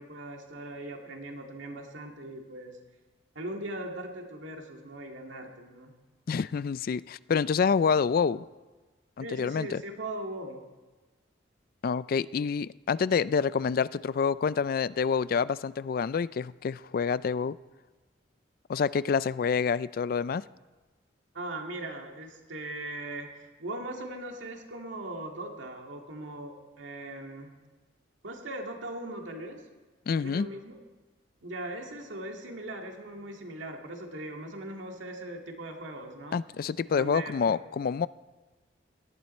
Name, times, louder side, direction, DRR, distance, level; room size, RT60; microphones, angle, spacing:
voice 1, 0.0-2.8 3.4-5.9 9.2-10.6 21.3-27.5 28.2-29.6 30.2-30.7 31.4-36.4 36.8-37.5, right 1 dB, 85° right, 2 dB, 2.1 m, -39 dB
voice 2, 6.3-8.4 9.2-9.8 11.8-17.6 18.7-20.4 30.1-30.5 36.3-38.1, left 6 dB, 50° left, 18 dB, 0.3 m, -27 dB
18.0 x 12.5 x 4.3 m, 1.3 s
head